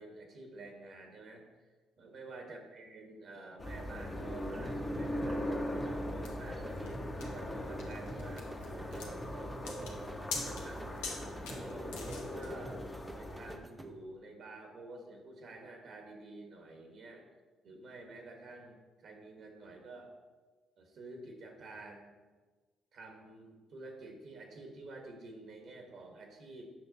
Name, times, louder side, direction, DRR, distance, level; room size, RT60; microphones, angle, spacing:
voice 1, 0.0-1.4 2.0-5.6 5.8-10.0 10.4-10.9 11.5-12.9 13.1-17.3 17.6-20.1 20.8-22.1 22.9-26.7, right 2 dB, 55° right, 3 dB, 1.4 m, -49 dB
sound 1, 3.6-13.6, left 1 dB, 25° left, 1.2 m, -40 dB
sound 2, 4.7-14.2, right 1 dB, 10° right, 0.7 m, -50 dB
sound 3, 6.2-12.5, left 4 dB, 80° left, 1.0 m, -44 dB
7.8 x 6.0 x 4.1 m, 1.3 s
hypercardioid pair, 50°, 0 cm